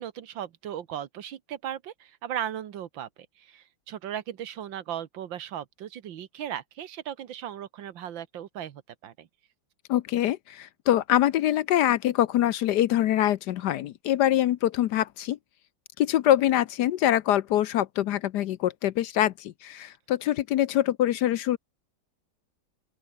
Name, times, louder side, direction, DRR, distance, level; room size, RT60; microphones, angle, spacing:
voice 1, 0.0-3.1 3.4-9.3, right 10 dB, 80° right, 1.9 m, -37 dB
voice 2, 9.9-15.4 16.0-21.6, left 12 dB, 70° left, 1.1 m, -24 dB
open air
omnidirectional pair, 2.1 m